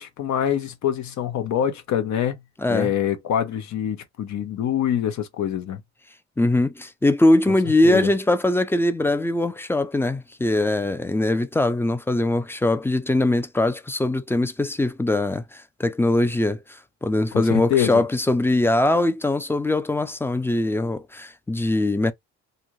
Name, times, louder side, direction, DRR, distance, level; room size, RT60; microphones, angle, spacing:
voice 1, 0.0-2.4 2.7-5.8 7.8-8.1 17.3-18.0, left 9 dB, 65° left, 0.8 m, -25 dB
voice 2, 2.6-2.9 6.4-22.1, left 1 dB, 10° left, 0.3 m, -22 dB
2.6 x 2.4 x 3.0 m
cardioid pair, 90°, 30 cm